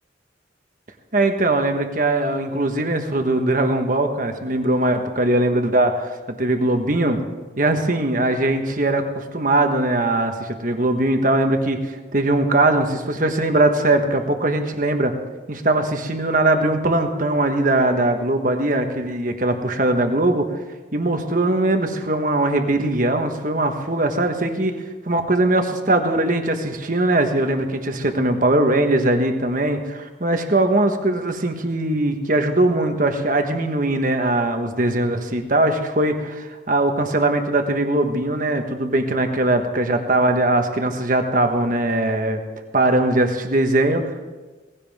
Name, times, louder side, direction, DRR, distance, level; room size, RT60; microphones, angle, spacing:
voice 1, 1.1-7.2 7.6-15.1 15.5-20.5 20.9-24.8 25.1-42.4 42.7-44.2, right 2 dB, 45° right, 5 dB, 1.4 m, -20 dB
18.5 x 16.0 x 3.6 m, 1.3 s
head